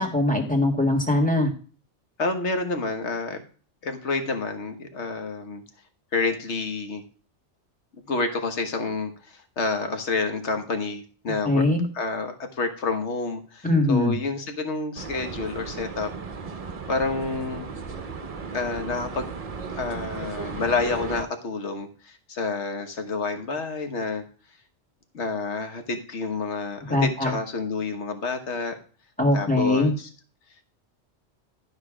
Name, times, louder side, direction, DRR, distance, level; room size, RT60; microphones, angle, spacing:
voice 1, 0.0-1.5 11.4-11.8 13.6-14.2 26.9-27.4 29.2-29.9, left 2 dB, 5° left, 3 dB, 1.5 m, -21 dB
voice 2, 2.2-3.4 3.8-5.6 6.1-7.0 8.1-11.7 11.9-16.1 16.9-17.7 18.5-19.3 19.7-24.2 25.1-28.7 29.3-30.1, left 3 dB, 75° left, 6 dB, 1.5 m, -29 dB
sound 1, 15.0-21.2, right 5 dB, 40° right, 0.6 m, -36 dB
12.0 x 4.9 x 4.9 m, 0.40 s
omnidirectional pair, 1.2 m